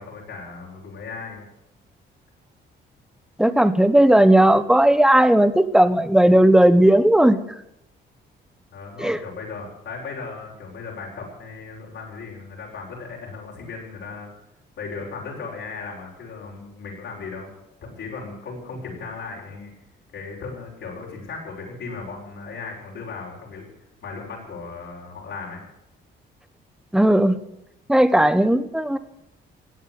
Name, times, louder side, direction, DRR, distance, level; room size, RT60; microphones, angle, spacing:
voice 1, 0.0-1.4 8.7-14.3 14.8-17.5 17.8-19.7 20.1-23.6 24.0-25.6, left 4 dB, 70° left, -3 dB, 6.3 m, -36 dB
voice 2, 3.4-7.4 9.0-9.2 26.9-27.4 27.9-29.0, right 1 dB, 5° right, 12 dB, 1.2 m, -16 dB
17.0 x 8.5 x 9.7 m, 0.83 s
cardioid pair, 90°, 20 cm